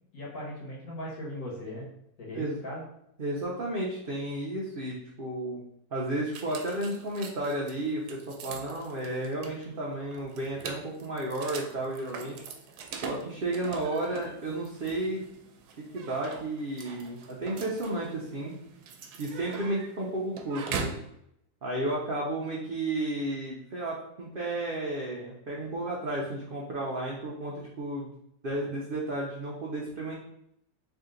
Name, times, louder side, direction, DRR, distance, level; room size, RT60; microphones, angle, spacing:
voice 1, 0.1-1.9 2.2-2.8, left 1 dB, 65° left, -3 dB, 1.6 m, -38 dB
voice 2, 3.2-5.6 5.9-12.4 13.0-15.2 15.8-18.6 19.2-20.9 21.6-28.1 28.4-30.1, right 1 dB, 65° right, -3 dB, 0.5 m, -33 dB
sound 1, 6.3-21.1, right 5 dB, 85° right, 1.1 m, -42 dB
3.4 x 2.8 x 3.7 m, 0.76 s
omnidirectional pair, 1.7 m